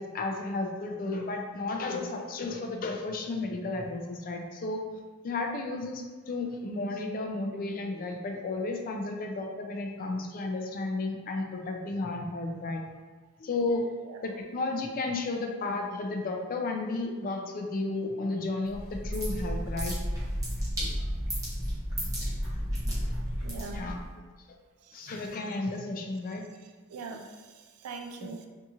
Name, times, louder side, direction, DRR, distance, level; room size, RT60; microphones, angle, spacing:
voice 1, 0.0-4.8 5.2-12.8 13.4-13.9 14.2-20.0 20.8-20.9 22.0-22.1 22.9-23.1 23.7-24.0 24.9-26.4 28.2-28.3, left 2 dB, 40° left, 2 dB, 0.3 m, -33 dB
sound 1, 18.7-24.1, equal, 15° right, 0.9 m, -32 dB
voice 2, 23.4-23.9 24.9-25.2 26.9-28.5, right 4 dB, 75° right, 4 dB, 0.3 m, -42 dB
2.7 x 2.3 x 2.8 m, 1.4 s
head